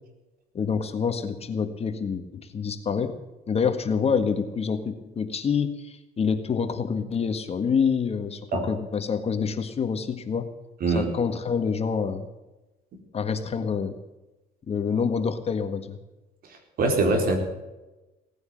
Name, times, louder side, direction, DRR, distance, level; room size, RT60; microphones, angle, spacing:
voice 1, 0.5-3.2 3.5-10.5 10.9-12.3 13.1-14.0 14.7-16.0, left 6 dB, 35° left, 8 dB, 1.7 m, -27 dB
voice 2, 10.8-11.1 16.8-17.4, right 3 dB, 60° right, 4 dB, 4.3 m, -22 dB
18.0 x 9.5 x 7.8 m, 1.0 s
cardioid pair, 110°, 17 cm